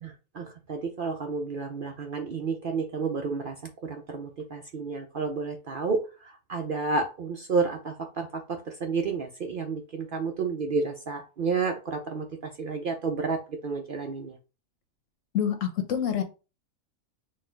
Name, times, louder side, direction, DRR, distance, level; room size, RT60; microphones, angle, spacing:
voice 1, 0.4-3.5 3.8-6.0 6.5-8.3 8.8-12.2 12.6-14.3, right 4 dB, 55° right, 4 dB, 0.6 m, -30 dB
voice 2, 15.3-16.2, left 9 dB, 70° left, 5 dB, 1.3 m, -26 dB
4.3 x 2.4 x 4.4 m, 0.31 s
omnidirectional pair, 1.4 m